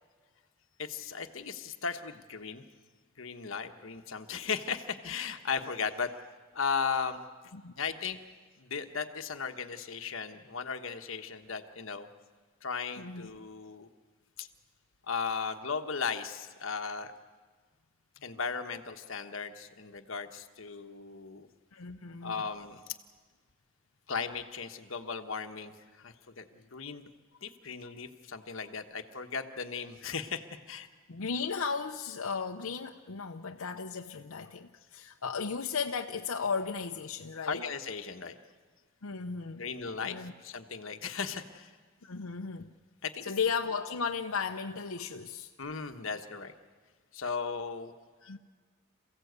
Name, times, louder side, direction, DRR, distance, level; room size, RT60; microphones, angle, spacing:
voice 1, 0.8-2.6 3.2-6.1 6.5-7.2 7.8-8.2 8.6-12.1 12.6-13.9 14.4-14.5 15.1-17.1 18.2-21.5 22.2-23.0 24.1-27.0 27.4-30.9 37.5-38.4 39.6-41.7 43.0-43.2 45.6-46.5 47.1-47.9, left 5 dB, 70° left, 6 dB, 1.3 m, -36 dB
voice 2, 13.0-13.3 21.7-22.5 31.1-37.6 39.0-39.6 40.0-40.3 42.0-42.8 43.2-45.5 48.2-48.4, left 5 dB, 90° left, 3 dB, 0.8 m, -35 dB
28.0 x 16.0 x 8.2 m, 1.5 s
head